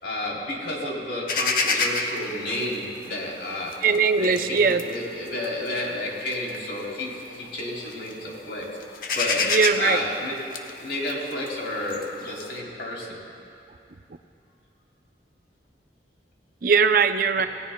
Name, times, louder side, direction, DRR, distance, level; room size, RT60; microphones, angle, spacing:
voice 1, 0.0-3.8 4.1-8.7 9.1-9.5 9.8-13.2, left 1 dB, 80° left, -3 dB, 3.4 m, -31 dB
sound 1, 1.3-7.5 7.8-8.4 8.6-12.6, left 4 dB, 50° left, 1.0 m, -29 dB
voice 2, 3.8-4.8 9.4-10.0 16.6-17.5, right 5 dB, 50° right, 8 dB, 0.5 m, -20 dB
28.5 x 16.5 x 2.3 m, 2.5 s
head